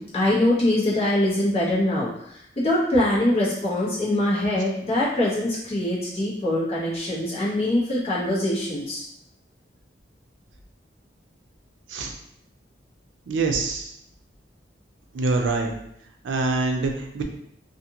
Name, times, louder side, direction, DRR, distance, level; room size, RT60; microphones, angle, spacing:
voice 1, 0.0-2.1 2.6-9.0, left 1 dB, 35° left, -7 dB, 0.9 m, -23 dB
voice 2, 13.3-13.9 15.1-15.7 16.2-17.2, right 3 dB, 80° right, 4 dB, 0.4 m, -24 dB
2.6 x 2.5 x 2.8 m, 0.74 s
head